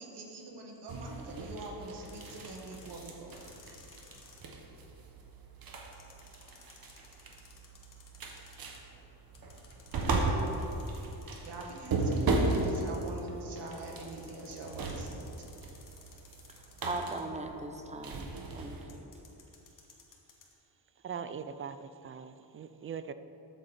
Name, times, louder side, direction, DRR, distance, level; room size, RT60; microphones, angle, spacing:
voice 1, 0.0-3.5 11.3-15.5, right 2 dB, 70° right, 0 dB, 1.8 m, -44 dB
sound 1, 0.9-18.8, right 2 dB, 55° right, 1.4 m, -36 dB
sound 2, 2.1-4.4 5.9-8.8 9.3-13.2 13.7-17.4 18.9-20.5, left 5 dB, 45° left, 1.6 m, -57 dB
voice 2, 16.9-19.1, right 2 dB, 15° right, 5 dB, 0.8 m, -39 dB
voice 3, 21.0-23.1, right 7 dB, 30° right, 11 dB, 0.4 m, -41 dB
12.5 x 7.9 x 4.3 m, 3.0 s
cardioid pair, 130°, 43 cm